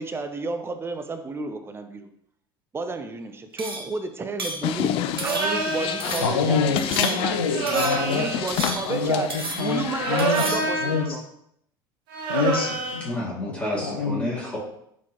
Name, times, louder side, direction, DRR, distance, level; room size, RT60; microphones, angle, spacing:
voice 1, 0.0-2.1 2.7-7.4 7.9-11.2, right 3 dB, 20° right, 8 dB, 0.6 m, -32 dB
sound 1, 3.6-4.0 4.4-4.7 5.2-5.7 6.0-6.4 6.8-7.4 7.7-8.1 8.5-9.0 9.3-9.8 10.2-10.7, right 3 dB, 90° right, 0.6 m, -33 dB
sound 2, 4.6-10.5, left 10 dB, 50° left, 0.3 m, -29 dB
sound 3, 5.1-6.1 7.5-8.5 9.9-11.1 12.1-13.1, right 3 dB, 65° right, 0.9 m, -27 dB
voice 2, 6.2-8.3 8.9-9.8 10.1-10.5 10.8-11.1 12.3-13.1 13.8-14.2, left 4 dB, 85° left, 3 dB, 0.7 m, -26 dB
voice 3, 13.0-14.6, left 1 dB, 10° left, -8 dB, 1.7 m, -30 dB
4.4 x 4.1 x 2.9 m, 0.74 s
hypercardioid pair, 75°, 12 cm